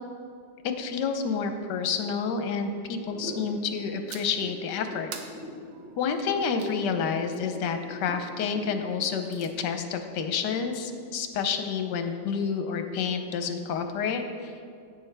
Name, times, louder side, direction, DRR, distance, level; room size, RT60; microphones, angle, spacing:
voice 1, 0.6-5.1 6.0-14.5, left 6 dB, 75° left, 7 dB, 1.3 m, -29 dB
sound 1, 3.0-10.9, equal, 10° right, 1.6 m, -43 dB
sound 2, 4.1-4.5 5.1-6.8 8.9-9.5, right 6 dB, 85° right, 1.4 m, -44 dB
10.5 x 8.4 x 3.3 m, 2.3 s
omnidirectional pair, 1.9 m